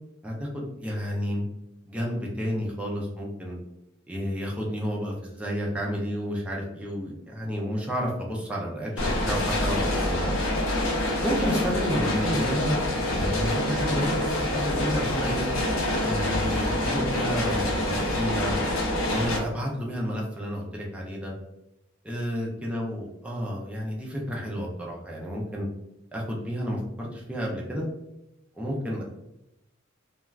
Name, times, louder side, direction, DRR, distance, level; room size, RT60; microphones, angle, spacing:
voice 1, 0.2-1.4 1.9-3.6 4.1-10.4 11.2-12.7 13.1-15.5 16.0-18.6 19.1-21.3 22.0-25.7 26.1-27.9 28.5-29.0, equal, 5° right, -3 dB, 0.4 m, -31 dB
sound 1, 9.0-19.4, left 1 dB, 80° left, 0.8 m, -26 dB
2.4 x 2.3 x 3.1 m, 0.89 s
head